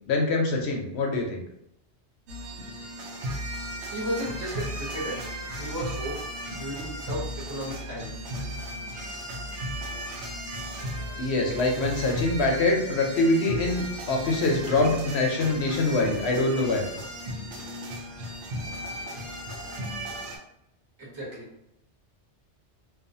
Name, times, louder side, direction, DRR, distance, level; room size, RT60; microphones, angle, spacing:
voice 1, 0.1-1.4 11.2-16.8, left 2 dB, 70° left, 1 dB, 0.8 m, -24 dB
sound 1, 2.3-20.4, equal, 80° right, 0.9 m, -35 dB
voice 2, 3.9-5.2 5.6-6.2 6.5-8.2 21.0-21.5, equal, 25° right, -5 dB, 0.9 m, -34 dB
2.4 x 2.4 x 2.6 m, 0.78 s
omnidirectional pair, 1.2 m